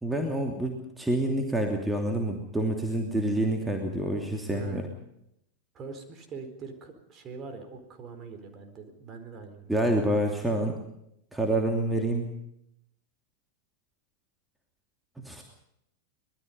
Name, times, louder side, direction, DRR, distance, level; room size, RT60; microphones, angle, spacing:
voice 1, 0.0-4.8 9.7-10.8 11.3-12.3 15.2-15.4, right 1 dB, 5° right, 2 dB, 2.9 m, -27 dB
voice 2, 4.5-4.9 5.7-9.8, right 4 dB, 30° right, 7 dB, 4.4 m, -43 dB
25.0 x 20.5 x 5.4 m, 0.77 s
figure-of-eight pair, 90°, 0 cm